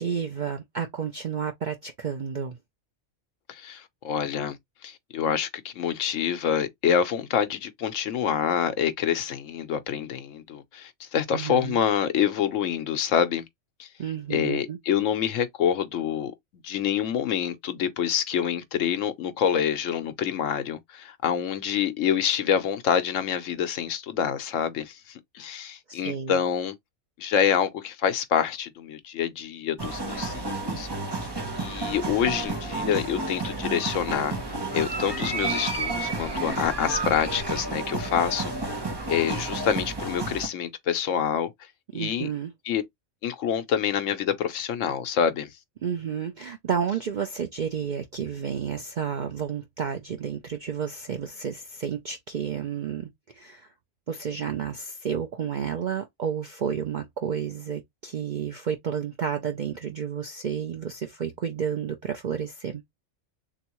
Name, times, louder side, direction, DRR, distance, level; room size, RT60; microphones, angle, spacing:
voice 1, 0.0-2.6 11.3-11.8 14.0-14.8 25.9-26.4 41.9-42.5 45.8-53.7 54.1-62.8, right 7 dB, 60° right, 0.5 m, -31 dB
voice 2, 3.5-4.6 4.8-13.4 13.8-13.9 14.3-16.3 16.6-26.7 27.2-30.9 31.6-34.3 34.7-38.5 39.1-41.5 41.9-42.3 42.7-42.8 43.2-45.5, left 8 dB, 75° left, 1.1 m, -26 dB
sound 1, 29.8-40.5, right 3 dB, 20° right, 0.9 m, -31 dB
3.5 x 2.9 x 2.9 m
omnidirectional pair, 1.3 m